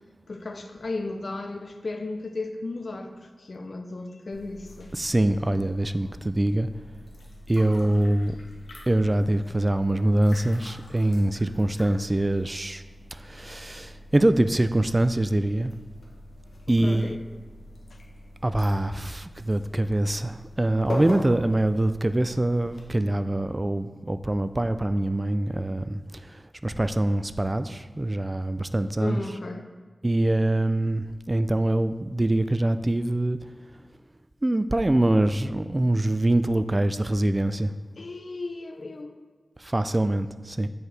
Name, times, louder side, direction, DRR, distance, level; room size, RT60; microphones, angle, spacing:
voice 1, 0.3-4.9 16.7-17.2 17.9-18.0 29.0-29.7 38.0-39.1, left 2 dB, 65° left, 6 dB, 0.5 m, -35 dB
sound 1, 4.3-22.9, left 1 dB, 90° left, 1.0 m, -42 dB
voice 2, 4.9-6.7 7.5-8.4 8.9-12.8 13.1-15.7 16.7-17.2 18.4-26.0 26.6-29.2 30.0-33.4 34.4-37.7 39.6-40.7, right 1 dB, 30° right, 11 dB, 0.3 m, -24 dB
7.7 x 4.7 x 3.3 m, 1.3 s
cardioid pair, 45°, 0 cm